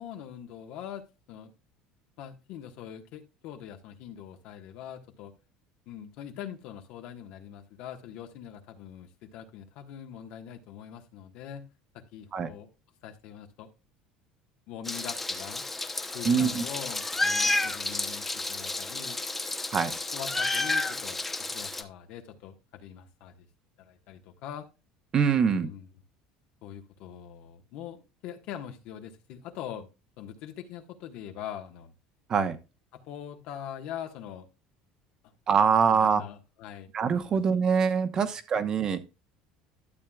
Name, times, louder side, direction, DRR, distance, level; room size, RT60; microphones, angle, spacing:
voice 1, 0.0-1.5 2.2-5.3 5.9-11.7 11.9-12.7 13.0-13.7 14.7-15.7 16.1-19.2 20.1-23.5 23.8-24.7 25.3-25.9 26.6-29.9 30.2-31.9 32.9-34.5 35.6-36.9 37.3-37.4 38.1-38.3, left 9 dB, 65° left, 5 dB, 1.4 m, -43 dB
Meow, 14.9-21.8, left 2 dB, 10° left, 0.8 m, -31 dB
voice 2, 16.2-16.6 19.7-19.9 25.1-25.7 32.3-32.6 35.5-36.2 36.9-39.0, right 6 dB, 35° right, 9 dB, 1.0 m, -24 dB
12.0 x 7.4 x 2.3 m, 0.28 s
cardioid pair, 130°, 2 cm